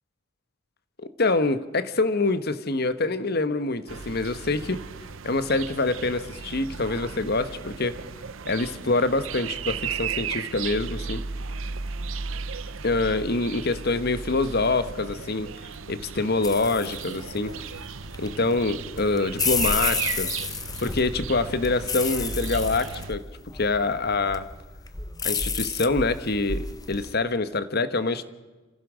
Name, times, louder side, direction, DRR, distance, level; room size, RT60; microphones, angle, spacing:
voice 1, 1.0-4.8 5.2-8.0 8.5-11.2 12.8-15.5 15.9-17.5 18.2-20.3 20.8-23.2 23.5-24.5 25.2-28.2, left 3 dB, 50° left, 12 dB, 1.2 m, -25 dB
sound 1, 3.9-23.1, right 6 dB, 75° right, 0.8 m, -35 dB
sound 2, 16.4-27.1, left 5 dB, 20° left, 1.0 m, -32 dB
28.0 x 15.5 x 6.3 m, 1.3 s
head